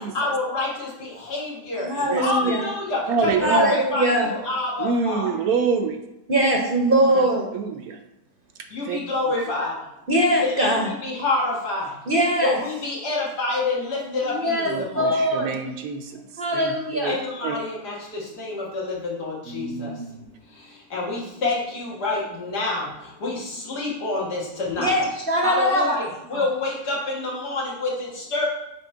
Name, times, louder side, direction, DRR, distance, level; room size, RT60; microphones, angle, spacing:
voice 1, 0.0-5.3 8.7-9.7 10.4-11.9 12.4-15.2 17.0-19.9 20.9-22.9 23.2-24.9 25.4-28.5, left 2 dB, 75° left, -4 dB, 2.1 m, -27 dB
voice 2, 1.8-2.7 3.4-4.3 6.3-7.5 10.1-10.9 12.1-12.6 14.2-15.5 16.1-17.2 24.8-26.0 26.3-26.4, right 1 dB, 45° right, -1 dB, 0.8 m, -22 dB
voice 3, 3.1-3.7 4.8-6.0 7.1-7.2 7.5-8.0 8.8-9.0 9.4-9.5 14.7-17.2 17.4-17.6 19.5-20.3, right 5 dB, 70° right, 5 dB, 1.0 m, -27 dB
7.1 x 3.0 x 4.5 m, 0.92 s
omnidirectional pair, 1.7 m